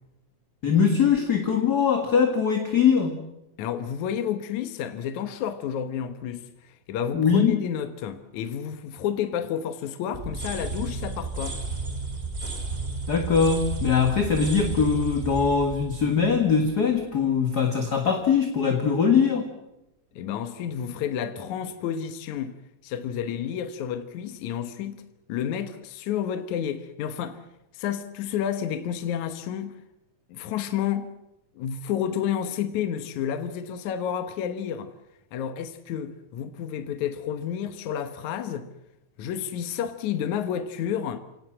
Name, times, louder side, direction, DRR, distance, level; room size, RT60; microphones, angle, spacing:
voice 1, 0.6-3.1 7.1-7.6 13.1-19.5, left 6 dB, 35° left, 1.9 m, -22 dB
voice 2, 3.6-11.6 20.2-25.0 25.3-27.4 27.7-29.8 30.3-31.1 31.6-34.9 35.3-38.7 39.2-41.2, left 9 dB, 70° left, 2.5 m, -30 dB
sound 1, 10.1-17.0, right 3 dB, 20° right, 2.8 m, -33 dB
29.0 x 18.0 x 7.6 m
omnidirectional pair, 3.6 m